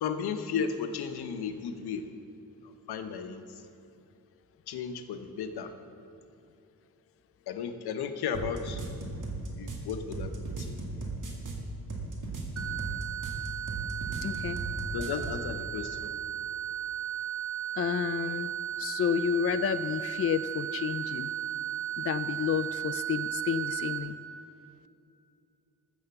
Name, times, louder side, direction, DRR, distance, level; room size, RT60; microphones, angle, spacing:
voice 1, 0.0-2.1 2.9-3.4 4.7-5.7 7.5-8.8 9.5-10.3 10.6-10.8 14.9-16.1, left 6 dB, 90° left, 8 dB, 0.9 m, -34 dB
sound 1, 8.3-15.4, right 2 dB, 55° right, 2.3 m, -36 dB
sound 2, 12.6-24.0, right 11 dB, 35° right, 1.8 m, -35 dB
voice 2, 14.2-14.6 17.8-18.5 18.8-21.3 22.0-24.2, left 8 dB, 40° left, 13 dB, 0.5 m, -30 dB
14.0 x 7.1 x 7.0 m, 2.8 s
cardioid pair, 70°, 37 cm